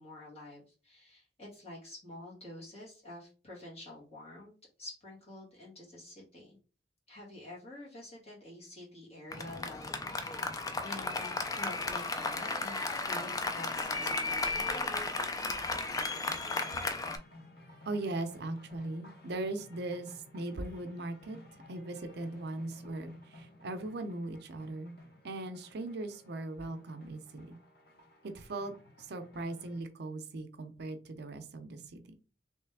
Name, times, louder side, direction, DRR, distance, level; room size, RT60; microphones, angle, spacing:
voice 1, 0.0-4.5 4.8-6.6 7.1-14.9, left 1 dB, 35° left, -5 dB, 1.9 m, -48 dB
Applause, 9.3-17.2, left 3 dB, 20° left, 0.4 m, -34 dB
sound 1, 16.1-29.8, left 1 dB, 60° left, 1.2 m, -55 dB
voice 2, 17.9-21.4 21.7-25.0 25.2-27.6 28.2-32.2, right 2 dB, 65° right, 8 dB, 0.5 m, -39 dB
3.2 x 3.1 x 3.4 m, 0.38 s
head